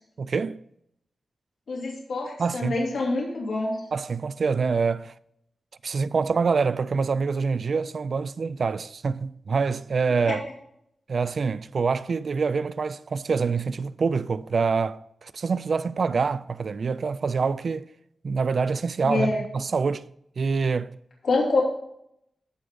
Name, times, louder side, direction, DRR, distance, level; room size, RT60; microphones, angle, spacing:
voice 1, 0.2-0.6 2.4-2.8 3.9-5.1 5.8-10.4 11.1-17.9 18.2-20.0 20.4-20.9, right 5 dB, 55° right, 0.3 m, -26 dB
voice 2, 1.7-3.8 10.2-10.3 19.0-19.4 21.2-21.6, left 3 dB, 75° left, 2.7 m, -26 dB
14.0 x 4.9 x 3.8 m
wide cardioid pair, 135°, 0 cm